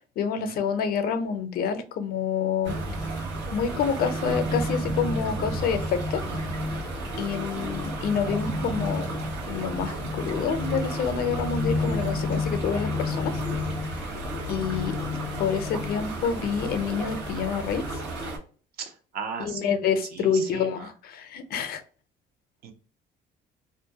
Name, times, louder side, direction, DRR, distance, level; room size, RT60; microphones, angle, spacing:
voice 1, 0.2-2.8 3.5-6.2 7.2-9.1 9.5-13.4 14.5-15.0 15.4-18.0 19.4-21.8, left 6 dB, 65° left, 9 dB, 0.5 m, -28 dB
sound 1, 2.6-18.4, left 1 dB, 90° right, 1.0 m, -30 dB
voice 2, 18.8-19.8 20.1-20.9 22.6-22.7, right 6 dB, 65° right, 5 dB, 0.7 m, -37 dB
2.4 x 2.2 x 2.7 m, 0.40 s
cardioid pair, 110°, 17 cm